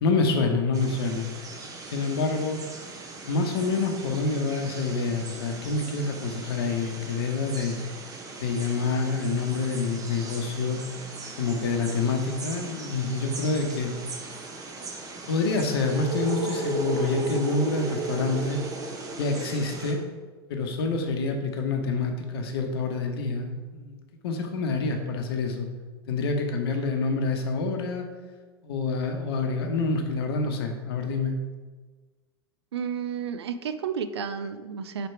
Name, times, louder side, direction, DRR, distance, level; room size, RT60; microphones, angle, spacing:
voice 1, 0.0-1.3 1.9-2.6 3.2-7.8 8.4-10.8 11.4-13.9 15.3-18.6 19.1-20.0 20.5-25.7 26.1-28.1 28.6-31.4, left 3 dB, 65° left, 4 dB, 1.0 m, -27 dB
sound 1, 0.7-19.9, right 3 dB, 25° right, 1.1 m, -37 dB
voice 2, 32.7-35.1, right 7 dB, 75° right, 11 dB, 0.4 m, -31 dB
5.0 x 4.7 x 4.5 m, 1.4 s
figure-of-eight pair, 85°, 14 cm